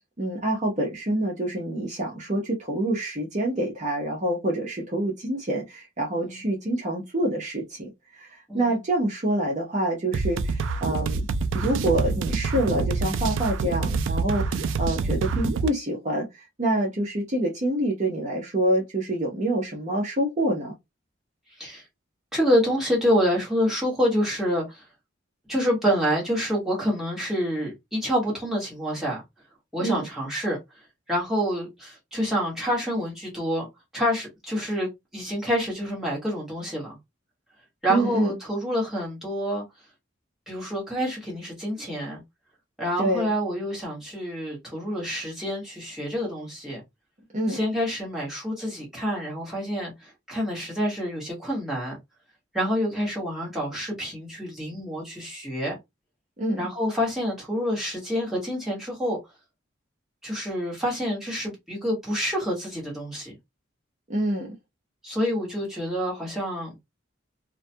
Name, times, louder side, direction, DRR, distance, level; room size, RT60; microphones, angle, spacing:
voice 1, 0.2-11.3 11.5-20.7 29.8-30.0 37.9-38.4 43.0-43.3 47.3-47.6 56.4-56.7 64.1-64.5, right 1 dB, 40° right, 0.7 m, -26 dB
voice 2, 6.1-6.4 8.5-8.8 15.0-15.3 21.6-21.8 22.3-24.8 25.5-29.2 29.7-30.6 31.1-33.7 33.9-37.0 37.8-39.6 40.5-42.2 42.8-46.8 47.5-52.0 52.5-55.8 56.6-59.2 60.2-63.3 65.0-66.7, equal, ahead, 1.2 m, -27 dB
sound 1, 10.1-15.7, right 4 dB, 75° right, 0.3 m, -26 dB
2.3 x 2.2 x 2.6 m
head